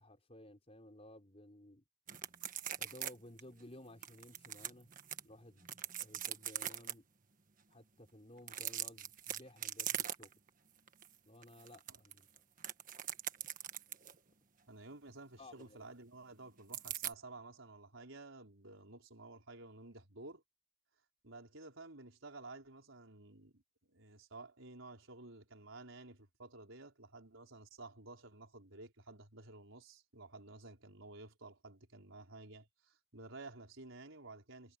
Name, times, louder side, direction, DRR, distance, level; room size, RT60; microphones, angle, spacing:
voice 1, 0.0-1.8 2.8-4.9 5.2-7.1 7.7-10.3 11.3-12.4 15.4-15.9, left 1 dB, 30° left, 5.4 m, -56 dB
sound 1, 2.1-3.1 3.4-3.5 4.0-5.2 5.6-6.9 8.4-10.5 10.9-11.1 11.4-14.2 16.7-17.1, right 10 dB, 45° right, 1.5 m, -41 dB
voice 2, 14.7-20.4 21.2-23.6 23.9-34.8, right 2 dB, 85° right, 4.6 m, -53 dB
head